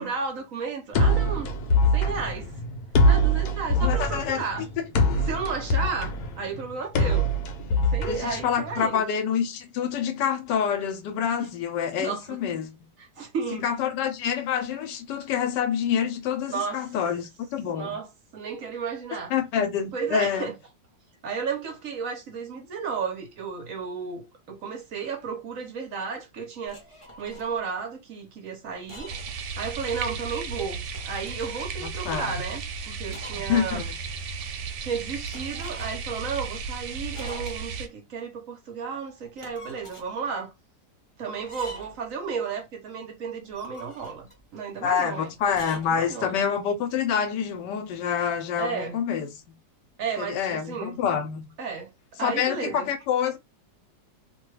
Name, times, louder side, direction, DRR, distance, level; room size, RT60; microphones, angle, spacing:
voice 1, 0.0-1.5 1.9-2.5 3.0-4.7 5.3-7.3 7.9-9.0 11.4-11.5 12.0-12.4 13.0-13.7 16.5-16.9 17.7-19.3 19.9-20.5 21.2-26.8 27.2-29.1 29.6-30.8 31.0-33.8 34.4-40.5 41.2-45.3 45.9-46.3 48.6-49.0 50.0-51.0 51.6-51.9 52.2-52.9, right 5 dB, 60° right, 1.0 m, -33 dB
sound 1, 0.9-8.9, equal, 70° left, 1.1 m, -23 dB
voice 2, 3.8-4.4 4.8-4.9 8.1-12.7 13.6-18.0 19.3-20.5 31.8-32.2 33.4-33.9 44.8-49.3 50.2-51.5 52.2-53.4, left 7 dB, 90° left, 1.3 m, -27 dB
sound 2, 26.7-27.5 28.7-29.4 29.7-29.8 30.7-31.8 33.1-33.5 33.8-33.9 35.3-36.1 37.1-37.8 39.2-40.1 41.4-42.1 43.4-44.4 45.4-45.9, equal, 30° left, 0.5 m, -45 dB
sound 3, 29.1-37.9, right 5 dB, 80° right, 1.2 m, -35 dB
2.8 x 2.2 x 3.1 m
omnidirectional pair, 1.8 m